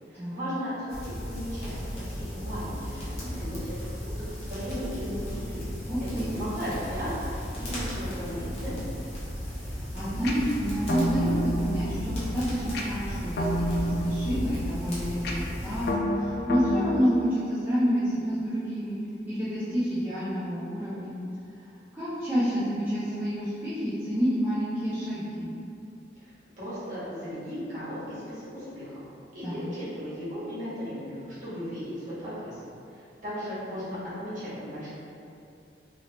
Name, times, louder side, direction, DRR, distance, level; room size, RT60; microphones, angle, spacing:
voice 1, 0.1-5.6 6.0-8.9 26.2-26.3 26.6-29.0 29.3-32.6 32.9-34.9, equal, 45° right, -12 dB, 1.3 m, -36 dB
sound 1, 0.9-15.9, equal, 35° left, 0.8 m, -36 dB
voice 2, 5.9-6.3 9.7-18.9 19.3-21.1 21.9-25.5 29.4-29.6, equal, 10° right, -14 dB, 0.5 m, -29 dB
sound 2, 10.2-17.0, equal, 55° left, 0.4 m, -30 dB
3.0 x 2.9 x 2.8 m, 2.6 s
head